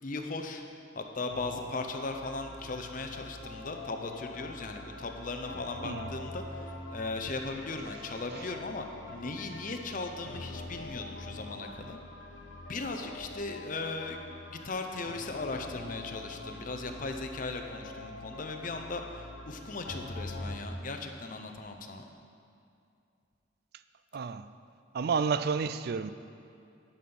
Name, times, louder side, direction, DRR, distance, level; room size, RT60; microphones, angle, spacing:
voice 1, 0.0-0.6 1.0-12.0 12.7-14.2 14.5-22.0, left 3 dB, 45° left, 4 dB, 0.7 m, -38 dB
sound 1, 1.3-20.6, left 2 dB, 75° left, 0.9 m, -44 dB
voice 2, 24.1-24.5 24.9-26.1, right 5 dB, 55° right, 13 dB, 0.4 m, -31 dB
11.0 x 5.5 x 6.0 m, 2.5 s
head